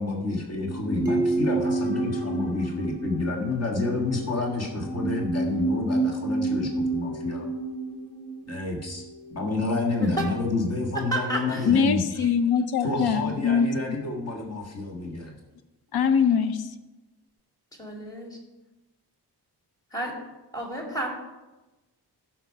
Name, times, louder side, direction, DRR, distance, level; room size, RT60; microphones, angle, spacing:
voice 1, 0.0-7.5 8.5-9.0 9.3-12.0 12.8-15.4, left 3 dB, 40° left, 1.7 m, -29 dB
sound 1, 0.5-9.9 10.1-10.2, right 2 dB, 85° left, 2.5 m, -30 dB
sound 2, 1.1-3.6, right 3 dB, 10° right, 2.6 m, -30 dB
voice 2, 11.1-11.7 12.2-12.3 17.8-18.4 19.9-20.1 20.5-21.1, right 1 dB, 10° left, 2.4 m, -31 dB
voice 3, 11.7-13.7 15.9-16.6, left 6 dB, 65° left, 0.7 m, -22 dB
15.0 x 6.2 x 4.6 m
wide cardioid pair, 130°, 40 cm